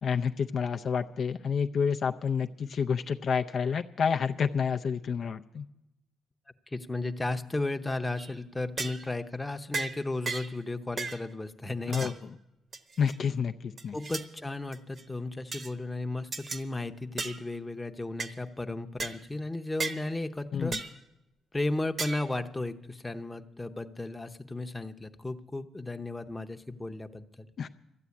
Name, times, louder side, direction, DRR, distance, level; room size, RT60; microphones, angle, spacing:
voice 1, 0.0-5.7 11.9-12.3 13.0-14.0 20.5-20.8 27.6-27.7, left 6 dB, 55° left, 7 dB, 0.4 m, -29 dB
voice 2, 6.7-12.1 13.9-20.7 21.5-27.5, left 2 dB, 15° left, 7 dB, 0.7 m, -34 dB
sound 1, 8.2-8.4 8.8-9.1 9.7-10.0 10.3-10.6 11.0-11.2 11.9-12.2 12.7-13.2 13.8-14.3 14.7-15.0 15.5-15.7 16.3-16.6 17.2-17.4 18.2-18.3 19.0-19.2 19.8-20.0 20.7-21.0 22.0-22.3, right 4 dB, 45° right, 0.9 m, -35 dB
13.0 x 9.0 x 8.4 m, 0.90 s
cardioid pair, 90°, 0 cm